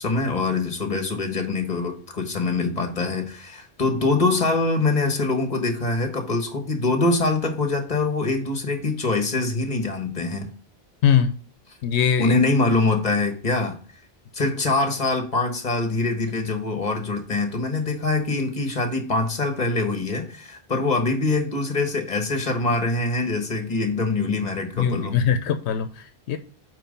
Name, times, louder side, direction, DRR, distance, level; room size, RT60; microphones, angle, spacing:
voice 1, 0.0-10.5 12.2-13.8 14.3-25.2, left 3 dB, 40° left, 1.4 m, -24 dB
voice 2, 11.0-11.3 11.8-12.4 24.8-26.4, left 8 dB, 90° left, 0.9 m, -21 dB
8.7 x 3.2 x 5.3 m
omnidirectional pair, 1.1 m